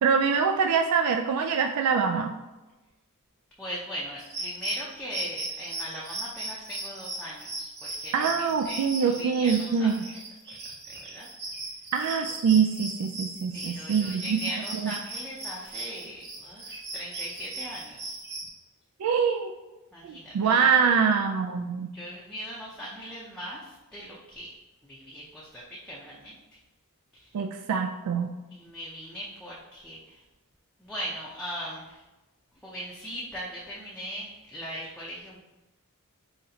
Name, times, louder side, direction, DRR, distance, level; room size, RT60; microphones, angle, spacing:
voice 1, 0.0-2.3 8.1-10.0 11.9-14.4 14.7-14.9 19.0-19.5 20.0-21.9 27.3-28.3, right 6 dB, 80° right, 5 dB, 0.3 m, -24 dB
voice 2, 3.6-7.7 8.0-9.9 10.5-10.6 10.9-11.3 13.5-18.2 19.9-20.5 21.9-24.5 24.8-26.6 27.1-27.3 28.5-30.2 30.8-32.0 32.6-35.4, equal, 5° left, -6 dB, 0.5 m, -39 dB
sound 1, 4.2-18.5, right 2 dB, 50° right, 1.0 m, -38 dB
4.2 x 3.9 x 2.8 m, 1.1 s
head